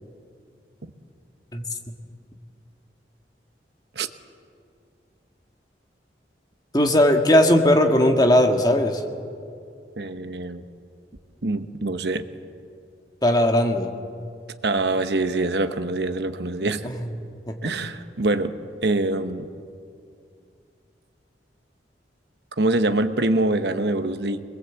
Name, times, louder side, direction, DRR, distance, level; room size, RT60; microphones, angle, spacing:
voice 1, 6.7-9.0 13.2-13.9 17.5-17.6, left 1 dB, 20° left, 4 dB, 1.6 m, -18 dB
voice 2, 10.0-10.6 11.4-12.3 14.6-16.9 17.6-18.5 18.8-19.5 22.6-24.4, right 2 dB, 65° right, 10 dB, 1.0 m, -24 dB
25.0 x 21.5 x 8.1 m, 2.4 s
head